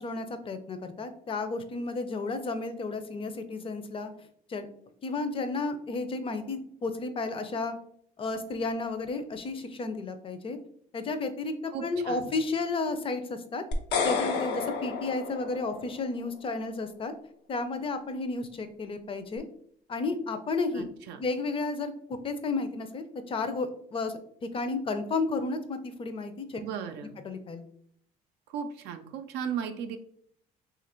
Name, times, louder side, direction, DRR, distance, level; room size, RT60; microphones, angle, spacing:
voice 1, 0.0-4.1 4.5-4.7 5.0-7.7 8.2-10.6 10.9-13.6 14.0-17.1 17.5-19.4 19.9-20.9 21.2-21.9 22.2-24.1 24.4-26.6 27.2-27.6, left 3 dB, 30° left, 9 dB, 0.5 m, -32 dB
voice 2, 11.7-12.3 20.7-21.2 26.5-27.1 28.5-30.0, right 7 dB, 85° right, 6 dB, 0.4 m, -36 dB
sound 1, 13.7-16.0, left 5 dB, 90° left, 0.7 m, -31 dB
2.9 x 2.5 x 4.3 m, 0.65 s
cardioid pair, 110°, 17 cm